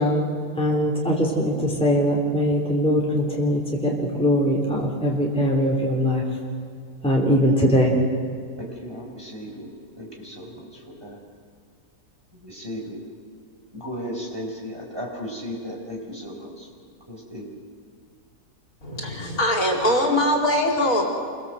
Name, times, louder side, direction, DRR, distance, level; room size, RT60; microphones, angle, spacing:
voice 1, 0.0-6.2 7.0-7.9, equal, 5° left, -2 dB, 3.6 m, -21 dB
voice 2, 8.6-9.7 10.0-11.2 12.3-13.0 13.7-16.7 17.1-17.5, equal, 15° right, -1 dB, 5.3 m, -35 dB
voice 3, 18.8-21.0, left 1 dB, 55° left, 0 dB, 4.5 m, -22 dB
27.5 x 24.5 x 8.0 m, 2.2 s
omnidirectional pair, 1.7 m